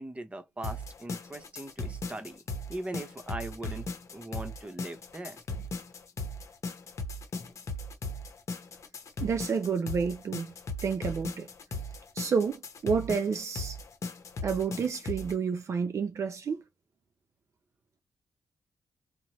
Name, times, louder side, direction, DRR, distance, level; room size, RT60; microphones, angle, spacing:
voice 1, 0.0-2.4 2.7-3.9 4.1-5.4, right 1 dB, 20° right, 0.8 m, -40 dB
sound 1, 0.6-15.3, left 2 dB, 55° left, 0.8 m, -38 dB
voice 2, 9.2-10.5 10.8-11.5 12.1-13.8 14.4-16.6, right 5 dB, 55° right, 0.5 m, -30 dB
2.8 x 2.1 x 2.9 m
cardioid pair, 80°, 6 cm